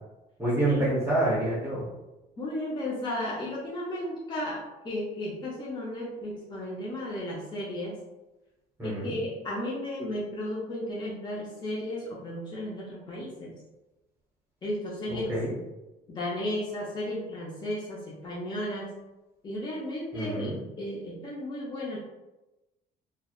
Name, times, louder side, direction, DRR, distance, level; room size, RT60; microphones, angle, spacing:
voice 1, 0.4-1.9 8.8-9.2 15.3-15.5 20.1-20.6, right 1 dB, 15° right, -8 dB, 0.8 m, -27 dB
voice 2, 2.4-8.0 8.8-13.5 14.6-15.4 16.1-19.0 19.4-22.0, left 1 dB, 25° left, -5 dB, 0.5 m, -34 dB
2.6 x 2.1 x 2.3 m, 1.0 s
cardioid pair, 110°, 17 cm